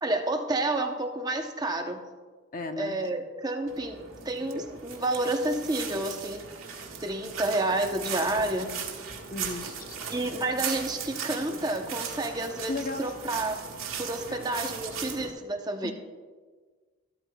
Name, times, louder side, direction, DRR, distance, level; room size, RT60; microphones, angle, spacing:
voice 1, 0.0-2.0 2.8-6.4 7.0-8.7 9.6-9.7 10.1-13.6 14.0-15.9, right 2 dB, 20° right, 4 dB, 0.7 m, -30 dB
voice 2, 2.5-3.0 9.3-10.0 12.7-13.1 14.3-14.4 15.8-15.9, left 2 dB, 40° left, 6 dB, 0.7 m, -35 dB
sound 1, 3.7-15.3, right 6 dB, 80° right, 1.7 m, -38 dB
13.5 x 12.5 x 2.3 m, 1.4 s
head